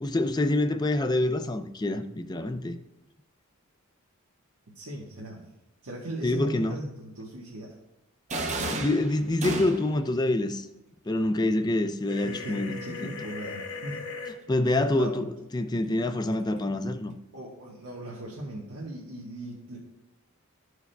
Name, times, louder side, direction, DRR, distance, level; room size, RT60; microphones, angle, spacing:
voice 1, 0.0-2.8 6.2-6.8 8.8-10.7 11.0-13.1 14.5-15.2 15.5-17.1, left 2 dB, 20° left, 8 dB, 0.4 m, -26 dB
voice 2, 4.7-5.5 5.8-7.7 12.2-14.0 15.0-15.1 17.3-19.8, right 1 dB, 90° right, -5 dB, 1.2 m, -38 dB
sound 1, 8.3-10.1, right 2 dB, 35° right, 0.7 m, -32 dB
sound 2, 12.1-14.3, left 4 dB, 55° left, 1.4 m, -38 dB
13.5 x 4.7 x 2.2 m, 0.88 s
head